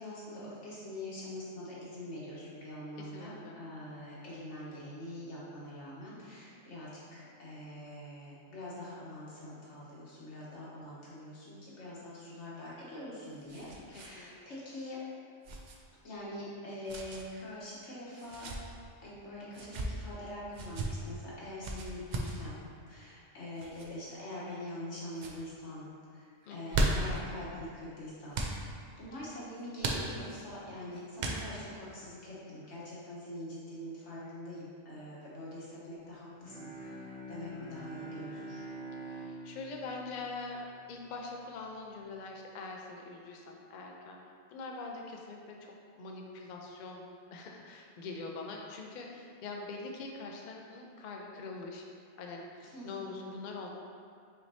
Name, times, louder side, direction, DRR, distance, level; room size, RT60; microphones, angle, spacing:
voice 1, 0.0-15.0 16.0-18.5 19.0-22.6 22.9-38.6 52.6-53.2, left 1 dB, 85° left, -8 dB, 1.5 m, -44 dB
voice 2, 3.0-3.6 14.2-14.3 26.5-26.9 39.0-44.2 44.5-51.9 52.2-53.7, left 3 dB, 55° left, 1 dB, 0.5 m, -43 dB
sound 1, 12.8-14.1 14.4-14.5 15.4-15.8 16.9-17.2 18.2-18.6 19.5-19.9 20.5-20.9 21.6-22.4 23.6-23.9 24.5-24.9 25.1-25.4 26.4-27.2 28.3-28.6 29.8-30.4 31.2-31.7, right 2 dB, 60° right, 0.5 m, -35 dB
Bowed string instrument, 36.4-41.3, right 2 dB, 5° left, 0.5 m, -46 dB
5.7 x 3.3 x 2.7 m, 2.2 s
omnidirectional pair, 1.2 m